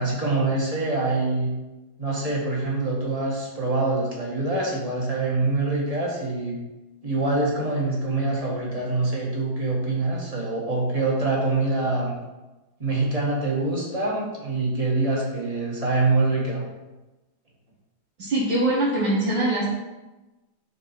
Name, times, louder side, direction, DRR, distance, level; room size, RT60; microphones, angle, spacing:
voice 1, 0.0-1.5 2.0-6.6 7.0-12.2 12.8-16.6, right 2 dB, 20° right, -4 dB, 1.5 m, -25 dB
voice 2, 18.2-19.7, right 1 dB, 65° right, -9 dB, 2.3 m, -23 dB
5.7 x 4.4 x 5.9 m, 1.1 s
omnidirectional pair, 2.2 m